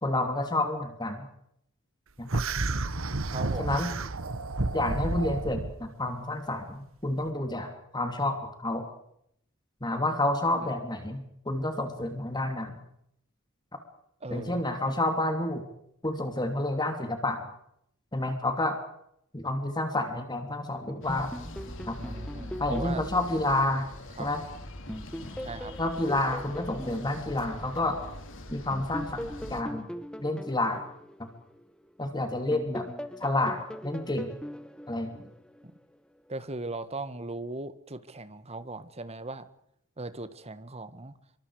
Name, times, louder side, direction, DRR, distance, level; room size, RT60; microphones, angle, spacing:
voice 1, 0.0-1.3 2.2-2.4 3.6-3.9 4.7-8.9 9.8-12.8 14.3-15.6 16.0-17.5 18.1-18.8 19.3-21.3 21.9-22.0 22.6-23.9 24.2-24.4 25.8-28.0 28.5-29.2 29.5-29.9 30.2-30.8 31.2-31.3 32.0-32.9 33.2-34.3 34.9-35.2, left 2 dB, 20° left, 6 dB, 3.1 m, -29 dB
sound 1, 2.3-5.7, right 2 dB, 70° right, 1.4 m, -31 dB
voice 2, 3.3-3.8 10.5-10.7 14.2-14.6 22.0-23.0 24.2-24.3 25.4-25.7 32.1-32.7 35.6-35.7 36.3-39.5 40.0-41.2, right 2 dB, 30° right, 12 dB, 1.7 m, -39 dB
sound 2, 21.0-29.6, left 1 dB, 65° left, 3.6 m, -42 dB
sound 3, 21.1-24.4 24.9-28.1 28.7-32.0 32.5-35.8, equal, 5° left, 1.2 m, -41 dB
27.0 x 24.5 x 5.0 m, 0.74 s
head